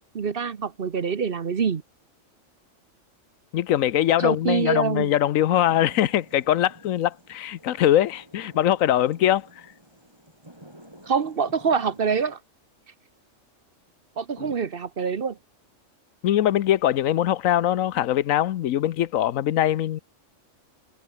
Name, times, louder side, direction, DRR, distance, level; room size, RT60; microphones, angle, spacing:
voice 1, 0.1-1.8 4.2-5.1 11.1-12.4 14.2-15.4, right 6 dB, 45° right, 1.1 m, -25 dB
voice 2, 3.5-9.7 14.4-14.5 16.2-20.0, left 12 dB, 80° left, 1.1 m, -22 dB
sound 1, 5.5-12.4, equal, 20° right, 7.8 m, -50 dB
omnidirectional pair, 1.4 m